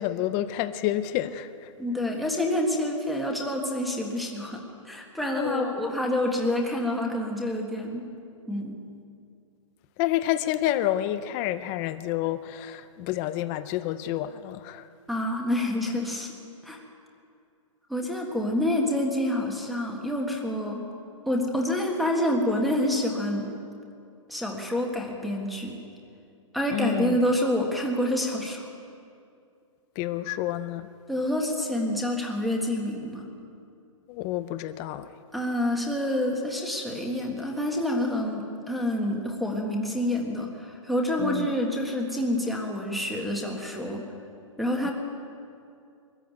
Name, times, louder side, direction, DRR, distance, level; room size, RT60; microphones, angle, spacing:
voice 1, 0.0-1.7 5.4-5.8 10.0-14.9 26.7-27.2 30.0-30.9 34.1-35.1 41.2-41.6 44.8-44.9, left 13 dB, 15° left, 13 dB, 0.4 m, -29 dB
voice 2, 1.8-8.0 8.5-8.8 15.1-16.3 16.6-16.8 17.9-20.9 21.3-23.5 24.3-25.8 26.5-28.7 31.1-33.3 35.3-44.0 44.6-44.9, left 1 dB, ahead, -1 dB, 1.6 m, -27 dB
22.5 x 14.0 x 9.3 m, 2.4 s
hypercardioid pair, 170°, 17 cm